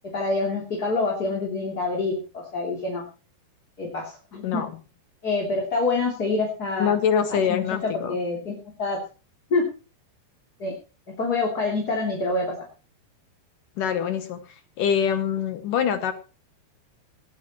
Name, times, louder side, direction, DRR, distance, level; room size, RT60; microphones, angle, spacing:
voice 1, 0.1-3.0 3.8-4.6 5.2-6.9 7.5-8.5 8.8-9.0 9.5-9.7 10.6-10.7 11.1-12.5, left 3 dB, 25° left, -2 dB, 3.2 m, -26 dB
voice 2, 6.8-8.2 13.8-16.1, left 8 dB, 70° left, 9 dB, 2.2 m, -24 dB
19.0 x 14.5 x 3.1 m, 0.34 s
omnidirectional pair, 5.0 m